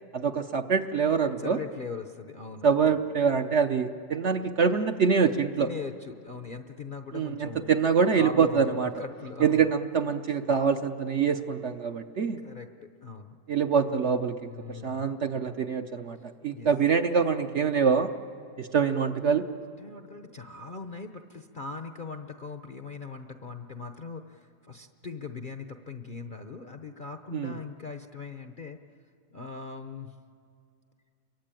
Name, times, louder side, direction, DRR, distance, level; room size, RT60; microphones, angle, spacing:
voice 1, 0.1-1.6 2.6-5.7 7.1-8.9 9.4-12.4 13.5-18.1 18.6-19.4 27.3-27.6, right 6 dB, 55° right, 6 dB, 0.9 m, -25 dB
voice 2, 1.4-3.0 5.6-7.8 8.1-9.7 12.4-12.7 13.0-13.4 14.4-15.2 16.5-16.7 19.8-28.8 29.3-30.1, left 4 dB, 40° left, 6 dB, 0.7 m, -40 dB
28.5 x 23.5 x 9.0 m, 2.5 s
omnidirectional pair, 1.8 m